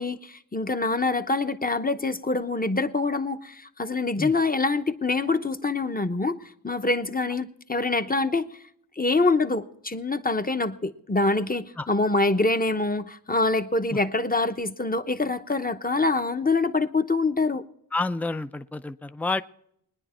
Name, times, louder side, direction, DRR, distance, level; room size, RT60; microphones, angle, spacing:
voice 1, 0.0-6.4 6.6-8.4 9.0-17.6, left 3 dB, 25° left, 0.9 m, -25 dB
voice 2, 17.9-19.4, left 3 dB, 5° left, 0.5 m, -29 dB
21.5 x 10.5 x 4.4 m
wide cardioid pair, 70°, 37 cm